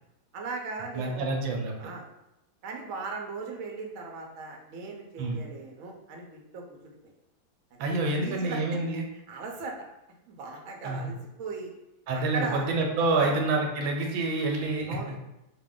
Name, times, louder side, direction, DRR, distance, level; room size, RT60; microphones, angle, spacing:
voice 1, 0.3-1.4 1.8-2.1 2.6-7.0 7.7-7.8 8.2-8.8 9.3-9.9 10.2-11.7 12.1-12.7 13.2-13.4 14.9-15.1, right 4 dB, 65° right, 0 dB, 0.8 m, -38 dB
voice 2, 0.9-1.9 5.2-5.4 7.8-9.0 10.8-11.1 12.1-15.0, right 2 dB, 85° right, 2 dB, 1.4 m, -28 dB
4.1 x 2.2 x 3.6 m, 0.88 s
omnidirectional pair, 2.1 m